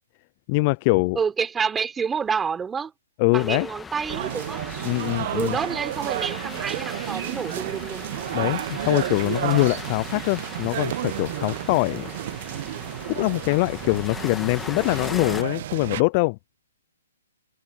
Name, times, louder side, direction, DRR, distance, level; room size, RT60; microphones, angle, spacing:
voice 1, 0.5-1.2 3.2-3.7 4.8-5.6 8.3-12.1 13.1-16.4, left 28 dB, 30° left, 0.3 m, -23 dB
voice 2, 1.2-2.9 3.3-4.6 5.3-8.1, right 6 dB, 10° right, 4.0 m, -28 dB
sound 1, 3.3-15.4, left 5 dB, 10° left, 1.8 m, -39 dB
sound 2, 4.1-16.0, right 13 dB, 45° right, 0.7 m, -32 dB
hypercardioid pair, 150°, 0 cm